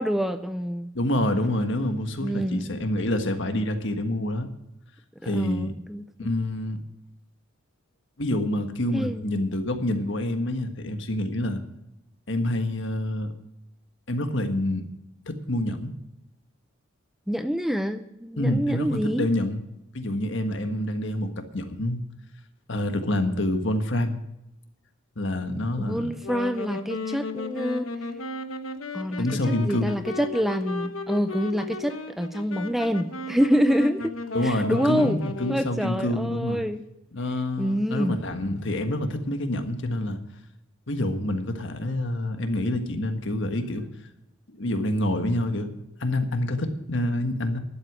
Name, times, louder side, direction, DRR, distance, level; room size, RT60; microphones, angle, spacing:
voice 1, 0.0-0.9 2.2-2.8 5.2-6.1 8.9-9.3 17.3-19.3 25.8-27.9 28.9-34.1 34.4-35.2 35.5-36.8 37.6-38.2, equal, ahead, 9 dB, 0.4 m, -26 dB
voice 2, 0.9-4.5 5.2-5.7 6.2-6.8 8.2-11.6 12.3-13.3 14.1-14.8 15.3-15.9 18.4-19.6 19.9-22.0 22.7-24.2 25.2-26.1 29.2-29.9 34.3-36.6 37.1-40.2 40.9-43.8 44.5-45.7 46.0-47.6, left 1 dB, 60° left, 7 dB, 1.5 m, -27 dB
Wind instrument woodwind instrument, 26.1-35.8, left 3 dB, 80° left, 1.2 m, -35 dB
12.0 x 8.0 x 9.3 m, 0.86 s
head